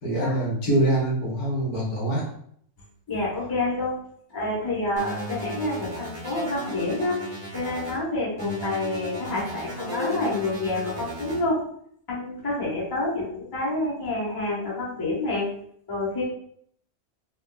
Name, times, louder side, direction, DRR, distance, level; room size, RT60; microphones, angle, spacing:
voice 1, 0.0-2.2, right 1 dB, 80° left, -5 dB, 1.7 m, -24 dB
voice 2, 3.1-3.9 4.3-7.2 7.5-11.6 12.1-15.5 15.9-16.2, left 2 dB, 20° left, -5 dB, 0.7 m, -28 dB
sound 1, 5.0-8.0 8.4-11.4, equal, 35° right, 1.3 m, -35 dB
4.3 x 2.3 x 2.3 m, 0.67 s
omnidirectional pair, 1.5 m